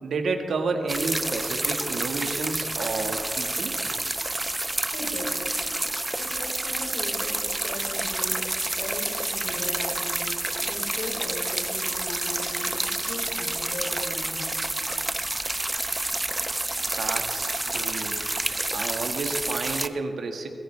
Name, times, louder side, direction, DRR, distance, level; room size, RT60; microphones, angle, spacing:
voice 1, 0.0-3.7 16.9-18.2 18.7-20.5, right 4 dB, 80° right, 4 dB, 1.6 m, -30 dB
sound 1, 0.9-19.9, right 2 dB, 20° right, 0.5 m, -29 dB
voice 2, 4.9-5.4 6.2-14.5, left 1 dB, 85° left, -2 dB, 4.5 m, -38 dB
22.0 x 15.5 x 3.4 m, 2.3 s
cardioid pair, 90°, 0 cm